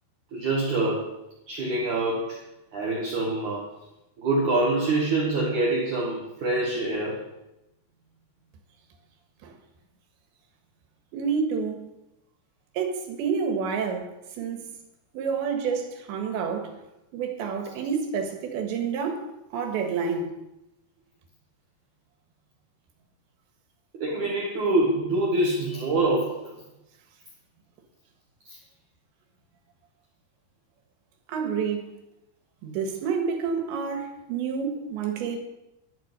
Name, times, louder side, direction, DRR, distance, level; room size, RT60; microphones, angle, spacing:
voice 1, 0.3-1.1 1.5-2.4 2.7-3.7 4.2-7.2 23.9-26.6 28.5-28.6, right 2 dB, 50° right, 2.8 m, -25 dB
voice 2, 11.1-11.9 12.8-14.7 15.1-16.8 17.1-19.3 19.5-20.3 31.3-31.9 32.6-35.4, right 6 dB, 85° right, 3.9 m, -29 dB
11.5 x 8.6 x 7.9 m
omnidirectional pair, 5.0 m